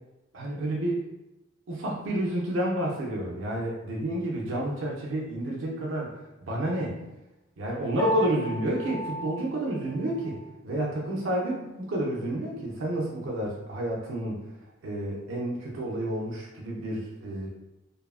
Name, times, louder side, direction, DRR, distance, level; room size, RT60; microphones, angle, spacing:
voice 1, 0.3-1.1 1.7-6.1 6.4-7.1 7.6-10.4 10.6-14.4 14.8-17.5, right 1 dB, 80° right, -3 dB, 0.5 m, -30 dB
Piano, 8.0-10.5, equal, ahead, 0.8 m, -35 dB
2.6 x 2.3 x 2.3 m, 0.98 s
head